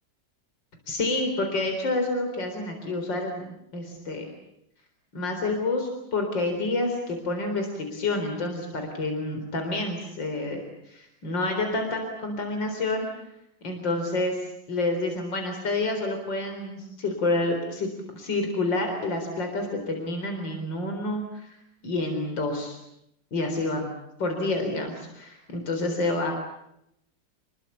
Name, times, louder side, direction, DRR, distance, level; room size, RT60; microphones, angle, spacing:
voice 1, 0.9-4.2 5.1-13.1 13.6-21.5 21.8-22.8 23.3-23.9 24.2-26.3, left 2 dB, 75° left, 4 dB, 4.7 m, -28 dB
30.0 x 21.0 x 8.4 m, 0.80 s
omnidirectional pair, 2.0 m